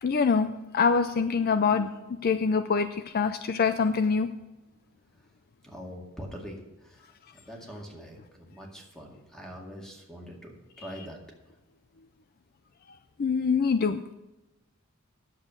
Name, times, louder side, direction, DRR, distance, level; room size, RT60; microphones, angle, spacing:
voice 1, 0.0-1.9 2.2-4.3 13.2-14.1, left 5 dB, 45° left, 11 dB, 0.4 m, -25 dB
voice 2, 5.6-11.2, equal, 5° left, -1 dB, 2.1 m, -44 dB
10.0 x 7.4 x 6.3 m, 1.0 s
head